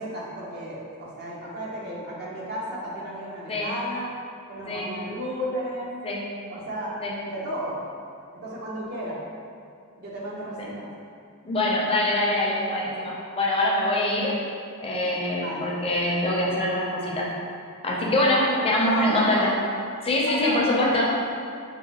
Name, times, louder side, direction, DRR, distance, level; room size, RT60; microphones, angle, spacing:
voice 1, 0.0-4.2 4.5-6.0 6.5-7.8 8.3-9.2 10.0-10.9 15.4-15.8 18.3-19.5 20.3-21.2, equal, 50° right, -5 dB, 0.7 m, -33 dB
voice 2, 11.4-14.3 14.8-17.3 17.8-19.5 20.0-21.1, left 1 dB, 25° left, -4 dB, 0.5 m, -24 dB
5.5 x 2.2 x 2.8 m, 2.3 s
head